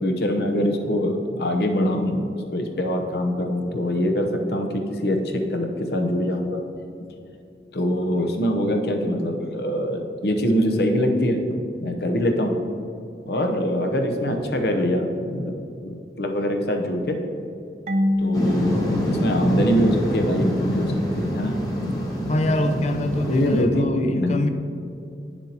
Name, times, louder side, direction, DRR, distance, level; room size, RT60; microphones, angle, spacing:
voice 1, 0.0-6.6 7.7-12.5 13.3-15.5 15.8-17.2 18.2-21.5 23.3-24.4, equal, 65° left, 3 dB, 0.8 m, -23 dB
Marimba xylophone / Wood, 17.9-20.6, left 1 dB, 40° right, 0.4 m, -27 dB
sound 1, 18.3-23.6, equal, 20° left, 1.1 m, -26 dB
voice 2, 22.3-24.5, left 1 dB, 40° left, 8 dB, 0.4 m, -24 dB
9.6 x 7.1 x 2.9 m, 2.5 s
head